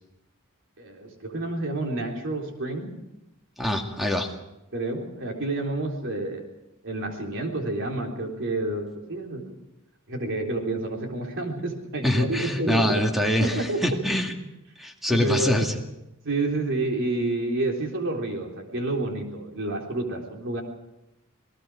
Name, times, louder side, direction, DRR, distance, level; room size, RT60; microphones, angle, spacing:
voice 1, 0.8-2.9 4.7-6.4 6.8-9.4 10.1-13.0 13.4-13.8 15.1-15.7 16.2-20.6, right 2 dB, 60° right, 1 dB, 3.9 m, -29 dB
voice 2, 3.6-4.3 12.0-14.3 14.8-15.7, left 1 dB, ahead, 2 dB, 2.1 m, -24 dB
27.5 x 18.5 x 5.0 m, 0.92 s
head